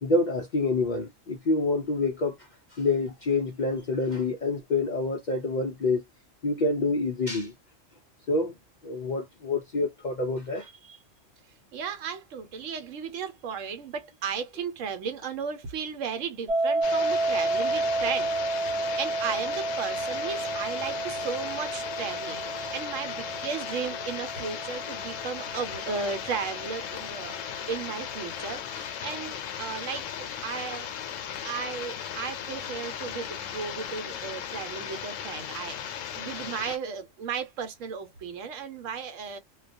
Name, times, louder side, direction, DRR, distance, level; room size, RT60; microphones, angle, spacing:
voice 1, 0.0-2.3 2.7-6.0 6.4-7.5 8.3-8.5 8.8-10.7, left 3 dB, 60° left, 0.4 m, -27 dB
voice 2, 11.7-18.3 19.0-27.4 27.7-30.9 31.4-39.4, right 6 dB, 85° right, 1.1 m, -35 dB
sound 1, 16.5-27.4, right 2 dB, 30° right, 0.6 m, -31 dB
sound 2, 16.8-36.8, left 9 dB, 80° left, 0.9 m, -37 dB
2.3 x 2.3 x 2.5 m
omnidirectional pair, 1.3 m